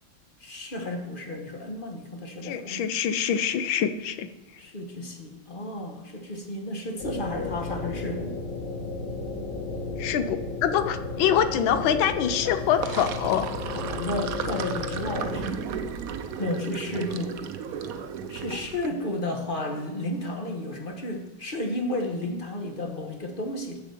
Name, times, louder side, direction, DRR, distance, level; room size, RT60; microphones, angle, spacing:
voice 1, 0.4-2.8 4.6-8.4 12.4-12.5 13.7-15.7 16.1-17.4 17.8-18.0 18.3-23.8, left 1 dB, 30° left, 3 dB, 1.1 m, -33 dB
voice 2, 2.4-4.3 10.0-13.5, left 9 dB, 80° left, 11 dB, 1.5 m, -25 dB
sound 1, 7.0-15.4, left 3 dB, 65° left, 4.9 m, -33 dB
Sink (filling or washing), 12.6-18.9, right 7 dB, 70° right, 0.9 m, -35 dB
7.2 x 7.2 x 6.8 m, 1.1 s
omnidirectional pair, 2.1 m